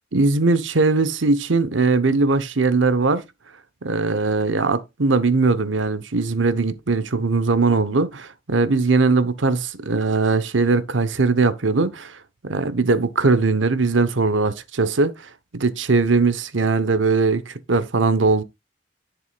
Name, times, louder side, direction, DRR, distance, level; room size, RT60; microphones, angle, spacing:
voice 1, 0.1-3.2 3.8-12.2 12.4-15.1 15.5-18.4, right 3 dB, 90° right, 1.0 m, -20 dB
11.0 x 7.1 x 2.4 m
head